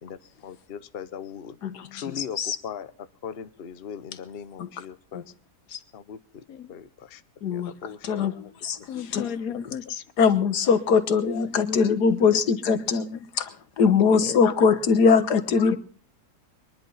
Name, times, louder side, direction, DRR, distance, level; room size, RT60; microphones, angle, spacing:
voice 1, 0.0-1.6 1.9-5.2 5.9-6.4 6.7-7.2 7.5-8.8 13.8-14.2, left 7 dB, 45° left, 12 dB, 0.9 m, -39 dB
voice 2, 2.2-2.6 4.6-4.7 5.7-5.8 7.4-7.7 8.0-8.3 8.6-8.8 9.1-9.3 10.2-13.0 13.4-13.5 13.8-15.8, left 5 dB, 80° left, 9 dB, 1.8 m, -21 dB
voice 3, 8.9-10.0 11.4-13.3 14.1-14.4 14.7-15.8, left 7 dB, 60° left, 13 dB, 1.4 m, -35 dB
22.5 x 11.0 x 5.6 m, 0.41 s
omnidirectional pair, 1.7 m